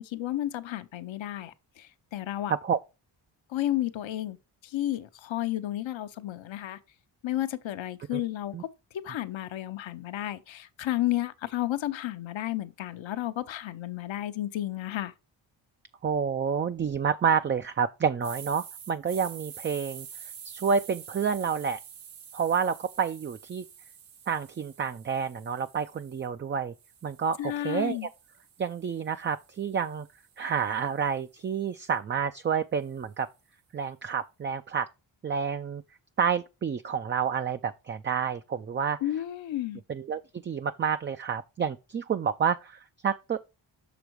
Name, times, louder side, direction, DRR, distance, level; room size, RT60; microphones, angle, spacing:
voice 1, 0.0-2.5 3.5-4.4 4.6-6.8 7.2-8.7 9.0-15.1 27.4-28.1 39.0-39.8, left 14 dB, 65° left, 0.8 m, -32 dB
voice 2, 16.0-20.1 20.4-21.8 22.3-23.6 24.3-26.7 27.0-28.1 28.6-30.1 30.4-33.3 33.7-34.9 35.2-35.8 36.2-39.0 39.9-43.4, right 7 dB, 25° right, 0.3 m, -29 dB
sound 1, 18.2-26.3 26.8-31.0, right 8 dB, 70° right, 1.2 m, -48 dB
6.1 x 5.1 x 4.5 m
cardioid pair, 50°, 50 cm